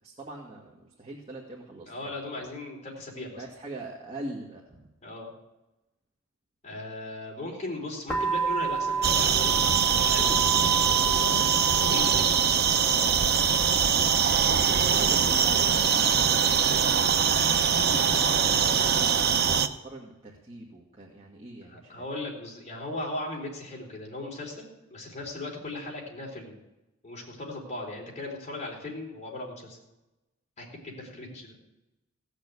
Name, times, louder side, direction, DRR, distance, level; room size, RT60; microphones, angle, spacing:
voice 1, 0.0-2.2 3.4-4.9 14.3-22.0, right 2 dB, 30° right, -3 dB, 1.9 m, -42 dB
voice 2, 1.9-3.4 5.0-5.3 6.6-9.6 9.9-11.4 11.8-12.6 21.7-26.6 27.0-29.8 30.6-31.6, left 2 dB, 35° left, -2 dB, 4.1 m, -38 dB
sound 1, 8.1-18.7, right 5 dB, 5° left, 2.7 m, -34 dB
sound 2, 9.0-19.7, right 7 dB, 50° right, 0.7 m, -23 dB
17.0 x 6.6 x 8.3 m, 0.97 s
head